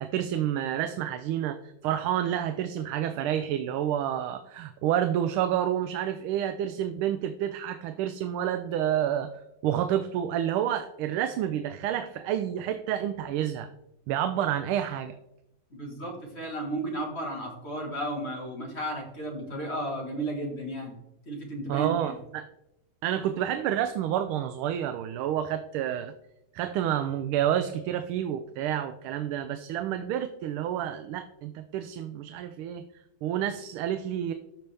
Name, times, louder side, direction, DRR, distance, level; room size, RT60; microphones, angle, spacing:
voice 1, 0.0-9.3 9.6-13.7 14.1-15.1 21.7-22.5 23.0-26.1 26.5-32.8 33.2-34.3, right 10 dB, 85° right, 9 dB, 1.4 m, -29 dB
voice 2, 15.7-20.9 21.3-22.2, right 1 dB, 30° left, 1 dB, 1.8 m, -34 dB
13.5 x 5.4 x 3.4 m, 0.85 s
omnidirectional pair, 2.3 m